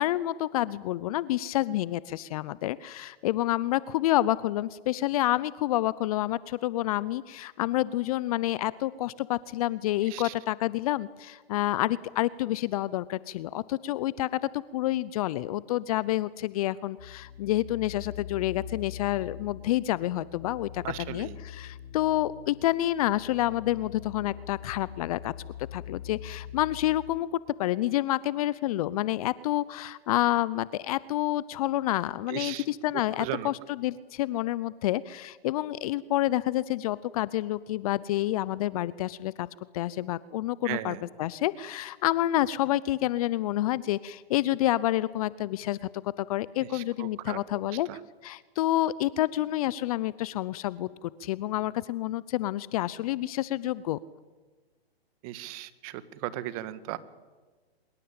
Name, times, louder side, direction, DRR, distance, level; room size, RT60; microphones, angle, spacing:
voice 1, 0.0-20.8 21.1-25.3 25.7-33.5 33.8-39.5 39.7-47.9 48.2-54.0, left 15 dB, 35° left, 20 dB, 0.7 m, -28 dB
sound 1, 17.0-27.2, left 9 dB, 55° left, 5.9 m, -43 dB
voice 2, 20.8-21.4 32.3-32.7 33.2-33.5 40.6-41.0 46.7-47.4 47.9-48.0 55.2-57.0, right 15 dB, 35° right, 14 dB, 1.9 m, -36 dB
24.5 x 22.0 x 8.9 m, 1.3 s
hypercardioid pair, 130°, 31 cm